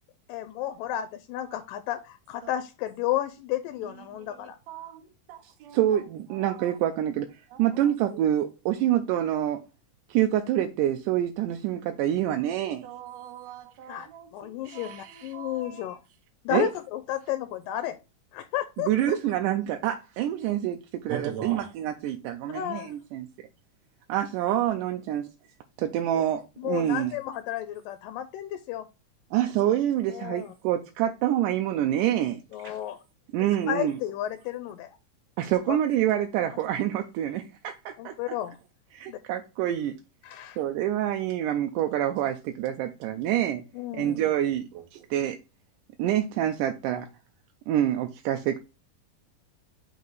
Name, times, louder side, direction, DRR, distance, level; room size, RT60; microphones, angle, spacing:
voice 1, 0.3-4.6 13.9-16.0 16.5-18.0 18.3-19.2 22.5-22.9 26.2-26.3 26.6-28.9 30.1-30.5 32.5-33.0 33.4-35.0 35.7-35.8 38.0-38.6 39.1-39.2 40.2-40.6 43.7-44.2, left 12 dB, 85° left, 2.3 m, -32 dB
voice 2, 3.8-6.1 6.3-6.7 7.5-7.9 12.8-15.8 21.1-21.7 44.7-44.8, right 8 dB, 65° right, 1.9 m, -42 dB
voice 3, 5.4-7.3 7.6-9.6 10.1-12.9 16.5-16.7 18.8-23.3 24.1-25.3 25.8-27.1 29.3-32.7 33.3-34.0 35.4-38.1 38.9-40.0 40.6-43.6 43.9-45.4 46.0-47.1 47.7-48.6, right 11 dB, 85° right, 2.1 m, -27 dB
5.5 x 4.0 x 4.6 m
omnidirectional pair, 3.8 m